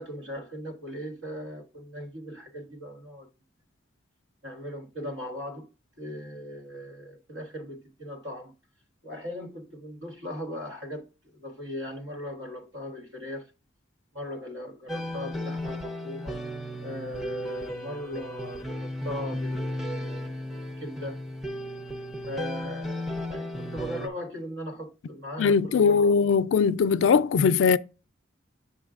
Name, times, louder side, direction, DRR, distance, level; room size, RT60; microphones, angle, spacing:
voice 1, 0.0-3.3 4.4-5.7 6.0-8.5 9.0-13.5 14.1-16.4 16.8-20.5 20.8-21.2 22.3-26.4, equal, 80° right, 1.4 m, -38 dB
sound 1, 14.9-24.1, left 1 dB, ahead, 0.6 m, -35 dB
voice 2, 25.4-27.8, left 5 dB, 85° left, 0.4 m, -20 dB
7.1 x 6.3 x 2.4 m
head